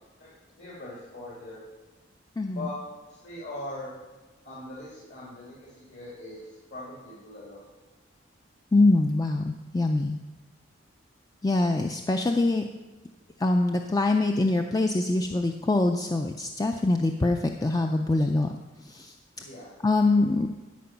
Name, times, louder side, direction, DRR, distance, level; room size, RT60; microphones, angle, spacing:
voice 1, 0.2-1.6 2.5-2.7 3.1-3.9 4.4-6.4 6.7-7.6 19.4-19.7, left 1 dB, 60° left, -7 dB, 2.4 m, -41 dB
voice 2, 2.4-2.7 8.7-10.2 11.4-12.6 13.4-18.5 18.8-19.1 19.8-20.5, left 2 dB, 20° left, 4 dB, 0.3 m, -24 dB
12.5 x 5.2 x 5.8 m, 1.2 s
head